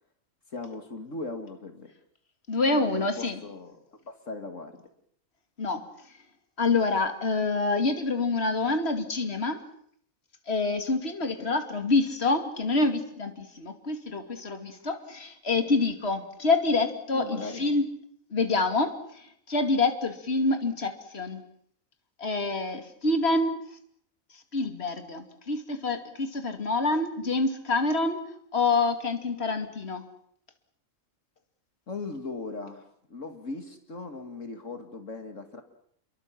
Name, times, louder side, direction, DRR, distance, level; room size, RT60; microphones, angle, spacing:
voice 1, 0.5-1.9 2.7-4.8 11.4-11.6 17.1-17.8 31.9-35.6, left 3 dB, 70° left, 6 dB, 2.6 m, -39 dB
voice 2, 2.5-3.4 5.6-5.8 6.6-9.6 10.5-17.8 18.3-18.9 19.5-21.4 22.2-23.5 24.5-28.2 28.5-30.0, left 3 dB, 50° left, 7 dB, 2.9 m, -26 dB
30.0 x 23.0 x 7.6 m, 0.65 s
omnidirectional pair, 1.4 m